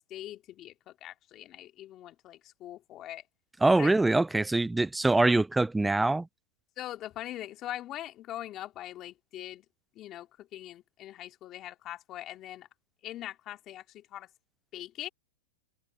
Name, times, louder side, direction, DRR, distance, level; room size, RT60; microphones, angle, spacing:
voice 1, 0.1-3.2 3.8-3.9 6.8-9.6 9.9-12.7 13.0-14.3 14.7-15.1, left 13 dB, 35° left, 2.4 m, -42 dB
voice 2, 3.6-6.3, right 2 dB, 5° right, 0.4 m, -24 dB
hypercardioid pair, 130°, 0 cm